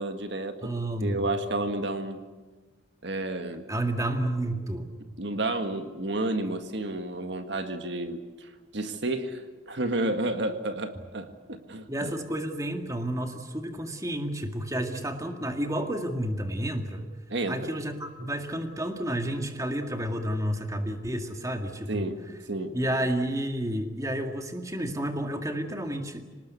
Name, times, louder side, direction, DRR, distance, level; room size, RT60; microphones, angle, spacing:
voice 1, 0.0-0.6 1.0-2.2 3.0-3.6 5.2-12.1 17.3-17.8 21.9-22.2 22.5-22.8, right 2 dB, 60° right, 7 dB, 1.8 m, -31 dB
voice 2, 0.6-1.3 3.7-4.9 11.9-17.1 17.5-22.1 22.7-26.2, right 1 dB, 15° right, 5 dB, 2.0 m, -30 dB
26.5 x 19.0 x 8.3 m, 1.3 s
head